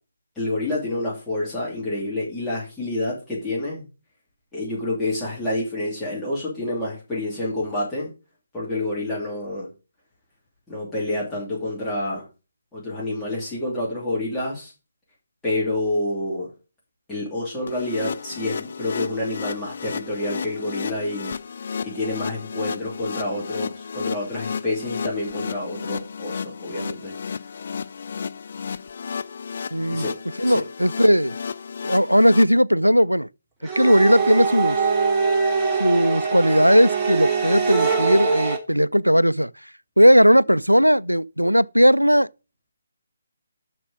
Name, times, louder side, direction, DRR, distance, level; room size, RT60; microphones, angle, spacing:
voice 1, 0.4-3.8 4.5-8.1 8.5-9.7 10.7-12.2 12.7-14.7 15.4-16.5 17.1-21.3 21.8-27.1 29.9-30.1 30.5-30.6, left 1 dB, 5° left, 2.7 m, -28 dB
sound 1, 17.7-32.4, left 6 dB, 45° left, 0.7 m, -33 dB
voice 2, 29.7-30.1 30.4-31.4 31.8-33.3 33.6-34.8 35.8-39.5 40.0-42.3, equal, 90° right, 0.4 m, -17 dB
sound 2, 33.6-38.6, right 5 dB, 15° right, 1.4 m, -23 dB
7.3 x 6.2 x 5.1 m
figure-of-eight pair, 145°, 0 cm